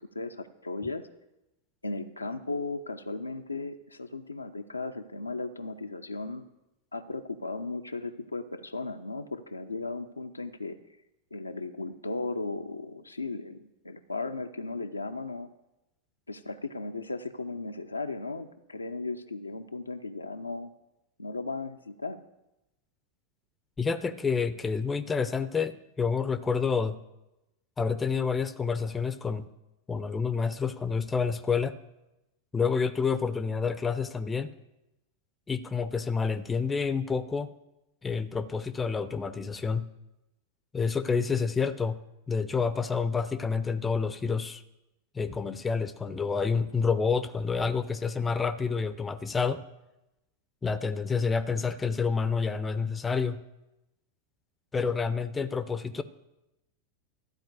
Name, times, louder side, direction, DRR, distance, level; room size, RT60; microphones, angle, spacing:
voice 1, 0.1-1.0 1.8-6.5 6.9-10.8 11.3-15.5 16.3-20.7 21.2-22.2, left 3 dB, 80° left, 7 dB, 0.5 m, -36 dB
voice 2, 23.8-27.0 27.8-29.5 29.9-31.7 32.5-34.5 35.5-37.5 38.0-39.9 40.7-42.0 42.3-44.6 45.1-49.6 50.6-53.4 54.7-56.0, left 5 dB, 15° left, 13 dB, 0.5 m, -28 dB
12.5 x 4.3 x 8.0 m, 0.93 s
figure-of-eight pair, 90°, 0 cm